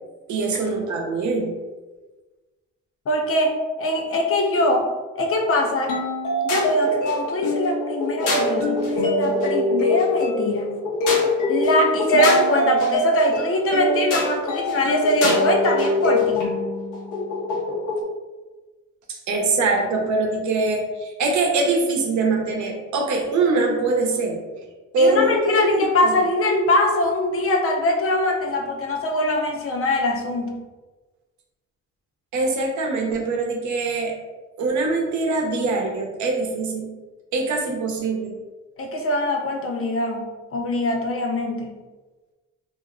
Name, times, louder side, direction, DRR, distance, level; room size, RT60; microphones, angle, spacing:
voice 1, 0.3-1.5 19.1-24.4 24.9-26.1 32.3-34.1 34.6-36.9 37.3-38.4, right 3 dB, 70° right, 1 dB, 0.8 m, -23 dB
voice 2, 3.1-4.9 5.2-5.9 6.4-10.8 11.5-16.5 25.0-30.5 38.8-41.8, left 1 dB, 50° left, 2 dB, 0.6 m, -22 dB
sound 1, 5.9-18.0, left 1 dB, 90° left, 0.8 m, -23 dB
2.6 x 2.1 x 3.6 m, 1.2 s
cardioid pair, 90°, 30 cm